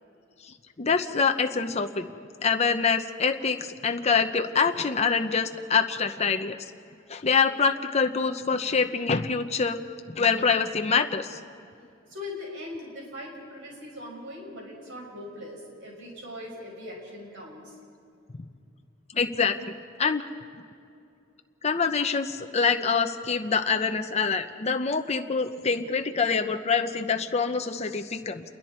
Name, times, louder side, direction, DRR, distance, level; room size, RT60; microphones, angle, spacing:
voice 1, 0.8-2.1 2.4-6.6 7.1-9.8 10.1-11.4 19.1-19.6 20.0-20.2 21.6-28.4, left 5 dB, 35° left, 6 dB, 0.7 m, -25 dB
voice 2, 12.1-17.8, left 1 dB, 70° right, -1 dB, 6.4 m, -40 dB
28.5 x 21.5 x 4.4 m, 2.5 s
head